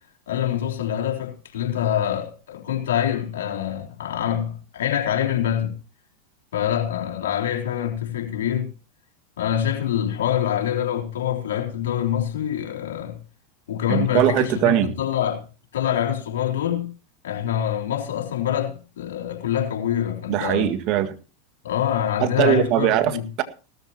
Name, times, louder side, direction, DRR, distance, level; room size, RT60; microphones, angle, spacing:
voice 1, 0.3-5.7 6.5-8.7 9.4-13.2 13.7-15.5 15.7-16.9 17.2-20.7 21.6-23.3, left 10 dB, 75° left, 3.7 m, -25 dB
voice 2, 13.9-14.9 20.3-21.1 22.2-23.4, right 12 dB, 50° right, 1.8 m, -21 dB
18.0 x 13.5 x 2.9 m
hypercardioid pair, 95°, 0 cm